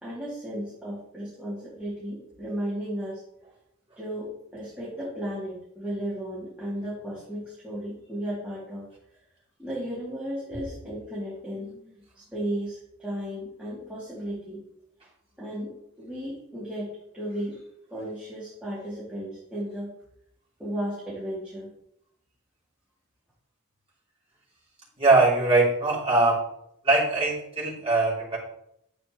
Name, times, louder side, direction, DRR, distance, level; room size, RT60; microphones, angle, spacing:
voice 1, 0.0-3.2 4.0-8.9 9.6-14.6 15.4-17.6 17.9-19.9 20.6-21.7, equal, 5° right, -9 dB, 2.7 m, -35 dB
voice 2, 25.0-26.4 26.8-28.4, right 3 dB, 25° right, -6 dB, 3.2 m, -21 dB
10.0 x 7.9 x 3.1 m, 0.76 s
head